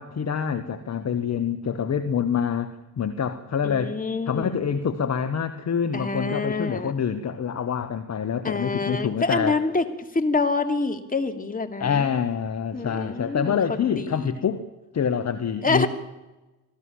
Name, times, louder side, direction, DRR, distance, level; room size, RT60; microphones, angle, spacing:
voice 1, 0.0-4.0 4.3-9.6 11.8-14.7 14.9-15.9, left 7 dB, 35° left, 10 dB, 1.6 m, -26 dB
voice 2, 3.6-4.7 5.9-6.9 8.4-9.9 10.1-12.1 12.7-14.3 15.6-15.9, left 3 dB, 20° left, 6 dB, 3.0 m, -26 dB
26.5 x 17.0 x 7.4 m, 1.0 s
hypercardioid pair, 50°, 44 cm